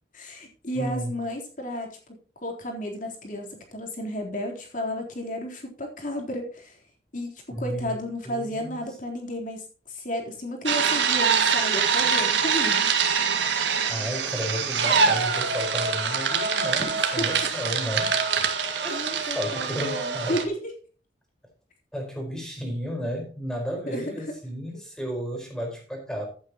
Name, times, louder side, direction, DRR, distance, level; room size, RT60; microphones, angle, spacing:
voice 1, 0.1-2.0 2.4-6.8 7.1-12.9 13.6-13.8 16.8-16.9 17.2-17.3 18.9-20.6 23.9-24.0, equal, 45° left, 1 dB, 3.7 m, -33 dB
voice 2, 0.7-1.1 7.5-8.0 8.2-8.8 13.9-18.4 18.8-20.4 21.9-26.3, equal, 5° left, 2 dB, 4.6 m, -33 dB
sound 1, 10.7-20.4, right 6 dB, 80° right, 1.9 m, -24 dB
15.5 x 8.5 x 3.0 m, 0.39 s
head